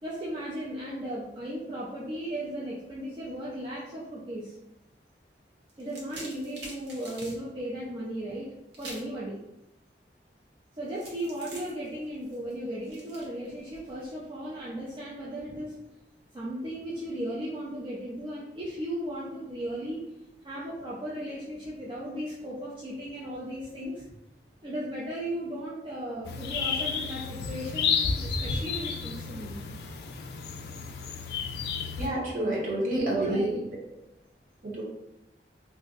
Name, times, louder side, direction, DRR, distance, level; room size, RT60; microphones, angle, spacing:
voice 1, 0.0-4.6 5.8-8.5 8.8-9.4 10.8-15.8 16.3-20.0 20.4-24.2 24.6-29.6 32.9-33.4, right 1 dB, 25° right, -7 dB, 0.4 m, -36 dB
sound 1, 5.7-7.4 8.7-9.2 11.0-14.1, right 1 dB, 75° right, 0.8 m, -46 dB
sound 2, 26.2-32.1, left 5 dB, 60° left, 0.3 m, -31 dB
voice 2, 32.0-33.6 34.6-34.8, right 1 dB, 50° right, -4 dB, 0.9 m, -28 dB
2.5 x 2.1 x 3.7 m, 0.91 s
head